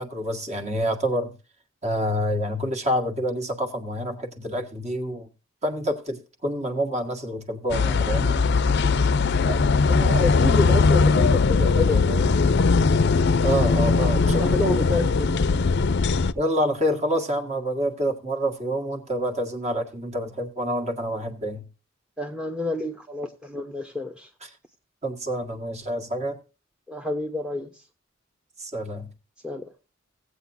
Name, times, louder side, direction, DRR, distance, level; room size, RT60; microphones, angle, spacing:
voice 1, 0.0-1.3 1.8-5.3 5.6-8.4 13.4-14.8 16.3-21.6 24.4-24.6 25.0-26.4 28.6-29.1, equal, 35° right, 1.8 m, -27 dB
sound 1, 7.7-16.3, left 4 dB, 55° left, 0.5 m, -20 dB
voice 2, 9.4-12.3 14.3-15.4 22.2-24.3 26.9-27.7 29.4-29.7, left 2 dB, 5° right, 0.9 m, -29 dB
17.0 x 8.4 x 2.7 m
head